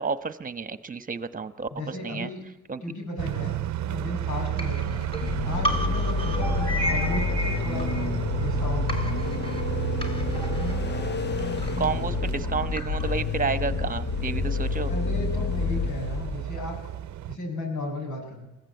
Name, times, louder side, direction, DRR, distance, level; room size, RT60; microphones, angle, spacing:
voice 1, 0.0-2.3 2.7-2.8 11.8-14.9, right 5 dB, 25° right, 13 dB, 1.3 m, -30 dB
voice 2, 1.7-2.4 2.8-3.6 3.9-5.1 5.4-9.2 12.4-12.5 14.9-16.8 17.3-18.5, left 1 dB, 75° left, 3 dB, 6.8 m, -35 dB
sound 1, 3.2-17.4, right 13 dB, 70° right, 0.8 m, -32 dB
sound 2, 4.6-8.5 8.9-13.3, equal, 20° left, 3.4 m, -34 dB
sound 3, 5.2-16.4, left 5 dB, 35° left, 0.7 m, -29 dB
21.5 x 15.5 x 8.5 m, 0.97 s
cardioid pair, 90°, 30 cm